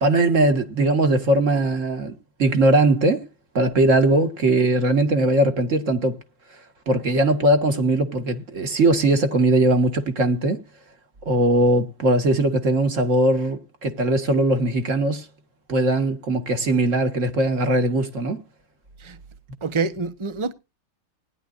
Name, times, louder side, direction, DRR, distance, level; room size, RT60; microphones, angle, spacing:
voice 1, 0.0-3.2 3.5-6.2 6.9-10.6 11.3-15.3 15.7-18.4, right 2 dB, 40° right, 2.0 m, -20 dB
voice 2, 19.6-20.5, right 4 dB, 20° right, 0.7 m, -26 dB
19.5 x 11.0 x 2.6 m
omnidirectional pair, 2.2 m